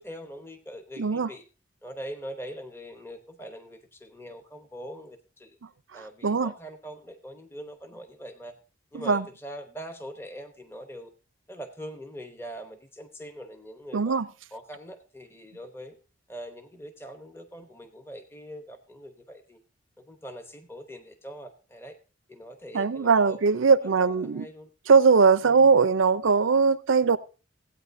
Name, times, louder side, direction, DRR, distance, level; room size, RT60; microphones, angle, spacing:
voice 1, 0.0-1.4 1.8-5.6 5.9-8.5 8.9-11.1 11.5-14.2 14.5-16.0 16.3-19.6 20.0-22.0 22.3-24.7 25.4-25.7, equal, 10° left, 0.8 m, -42 dB
voice 2, 1.0-1.3 6.2-6.5 8.9-9.2 13.9-14.3 22.7-24.5 24.9-27.2, right 5 dB, 80° right, 0.6 m, -20 dB
16.0 x 8.8 x 2.6 m
head